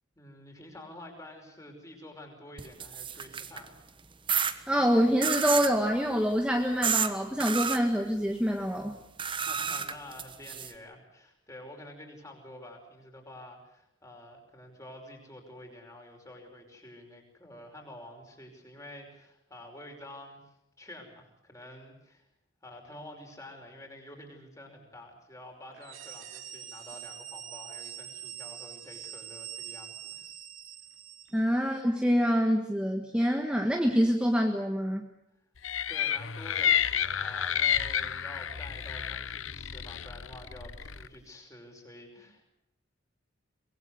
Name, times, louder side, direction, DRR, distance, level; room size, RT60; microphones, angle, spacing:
voice 1, 0.2-3.8 9.3-20.4 20.8-22.3 22.6-30.3 35.9-42.5, left 1 dB, 15° left, 3 dB, 5.5 m, -48 dB
sound 1, 2.6-3.7 4.3-4.5 5.2-5.7 6.8-7.1 7.4-7.8 9.2-10.7, right 7 dB, 25° right, 1.2 m, -30 dB
voice 2, 4.7-9.0 31.3-35.1, equal, 5° right, 2 dB, 1.5 m, -26 dB
sound 2, 25.7-31.4, right 10 dB, 75° right, 3.0 m, -44 dB
sound 3, 35.6-41.1, left 9 dB, 75° left, 0.9 m, -30 dB
24.0 x 22.0 x 8.1 m, 0.83 s
head